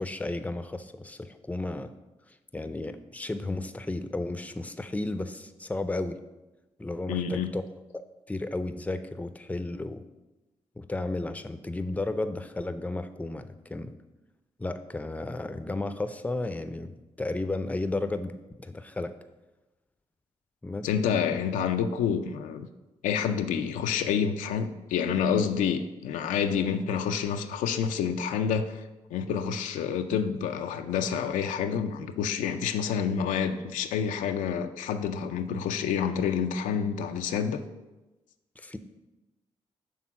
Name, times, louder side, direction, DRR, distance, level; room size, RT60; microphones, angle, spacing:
voice 1, 0.0-1.9 2.5-6.2 6.8-7.6 7.9-8.0 8.3-10.0 10.8-14.0 14.6-19.1 20.6-20.9 38.6-38.8, left 2 dB, 10° left, 11 dB, 0.5 m, -33 dB
voice 2, 7.1-7.5 20.8-22.7 23.0-28.8 29.1-37.6, left 7 dB, 85° left, 7 dB, 0.4 m, -28 dB
6.2 x 3.5 x 5.8 m, 1.1 s
supercardioid pair, 45°, 13 cm